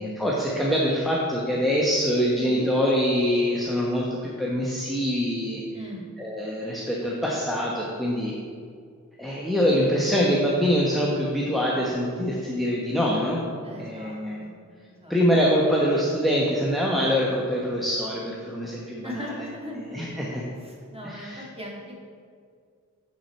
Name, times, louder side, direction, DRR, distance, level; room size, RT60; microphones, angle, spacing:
voice 1, 0.0-5.6 6.2-8.3 9.2-13.4 13.8-14.4 15.1-19.4 19.7-20.4 21.0-21.4, equal, ahead, -4 dB, 1.0 m, -24 dB
voice 2, 5.7-6.0 13.6-14.5 14.9-15.1 19.0-21.9, equal, 20° right, -3 dB, 1.9 m, -39 dB
7.6 x 6.0 x 4.3 m, 2.1 s
wide cardioid pair, 65°, 31 cm